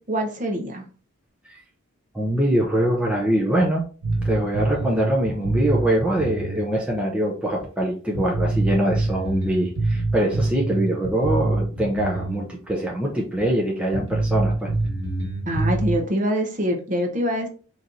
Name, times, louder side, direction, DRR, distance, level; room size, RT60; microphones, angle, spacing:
voice 1, 0.1-0.8 15.5-17.5, equal, 35° right, 2 dB, 0.9 m, -24 dB
voice 2, 2.1-3.8 4.2-14.7, right 1 dB, 5° right, -2 dB, 0.6 m, -23 dB
sound 1, 4.0-6.6 6.9-7.0 7.6-7.7 8.1-12.4 12.7-12.8 13.4-13.5 13.9-16.0, right 2 dB, 70° right, 1.6 m, -25 dB
4.1 x 3.1 x 3.9 m, 0.38 s
head